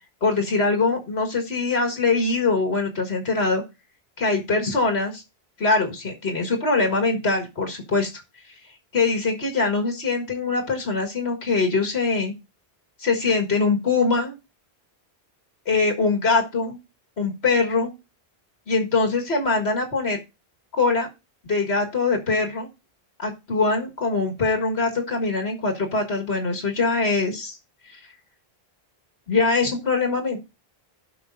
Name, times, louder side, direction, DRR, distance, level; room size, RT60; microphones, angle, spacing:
voice 1, 0.2-3.6 4.2-5.2 5.6-8.2 8.9-12.3 13.0-14.3 15.7-16.8 17.2-17.9 18.7-20.2 20.7-21.1 21.4-22.7 23.2-27.6 27.9-28.0 29.3-30.4, left 3 dB, 90° left, 3 dB, 1.9 m, -23 dB
16.5 x 5.6 x 2.6 m, 0.27 s
omnidirectional pair, 1.1 m